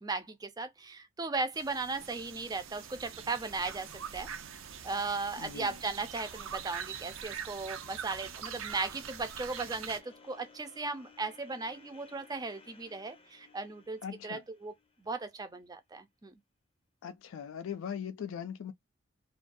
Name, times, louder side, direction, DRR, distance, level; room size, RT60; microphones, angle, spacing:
voice 1, 0.0-3.9 4.1-4.3 4.8-14.7 15.0-16.3, right 3 dB, 20° right, 0.4 m, -37 dB
sound 1, 1.5-10.0, right 7 dB, 80° right, 0.5 m, -43 dB
voice 2, 5.4-5.8 14.0-14.4 17.0-18.7, left 8 dB, 75° left, 0.3 m, -40 dB
sound 2, 7.3-15.4, left 4 dB, 30° left, 0.7 m, -60 dB
2.3 x 2.2 x 2.5 m
head